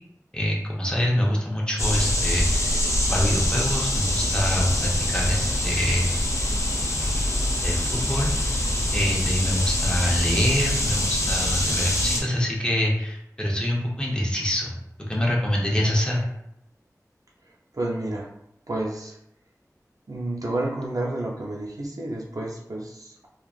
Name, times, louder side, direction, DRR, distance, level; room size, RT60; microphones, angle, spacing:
voice 1, 0.3-6.2 7.0-7.3 7.6-8.7 8.9-14.8 15.1-16.2, equal, 15° left, -3 dB, 0.8 m, -25 dB
sound 1, 1.8-12.2, left 1 dB, 50° left, 0.6 m, -24 dB
voice 2, 17.5-18.3 18.7-19.2 20.1-23.3, right 2 dB, 65° right, -2 dB, 0.6 m, -30 dB
3.1 x 2.4 x 2.4 m, 0.79 s
wide cardioid pair, 50°, 6 cm